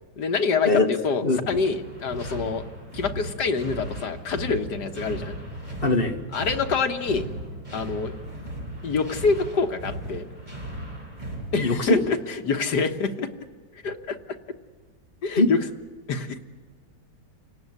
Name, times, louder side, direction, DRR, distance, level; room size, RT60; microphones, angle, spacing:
voice 1, 0.2-2.6 2.9-5.4 6.3-7.3 7.7-8.1 8.8-10.3 11.5-13.3 13.8-14.2 15.2-15.7 16.1-16.4, left 4 dB, 75° left, 5 dB, 2.0 m, -26 dB
sound 1, 1.5-12.2, right 1 dB, 25° right, 4.6 m, -37 dB
voice 2, 5.8-6.1 11.6-12.0 15.4-15.5, left 2 dB, 30° left, 4 dB, 2.1 m, -21 dB
29.0 x 17.5 x 9.5 m, 1.5 s
omnidirectional pair, 1.8 m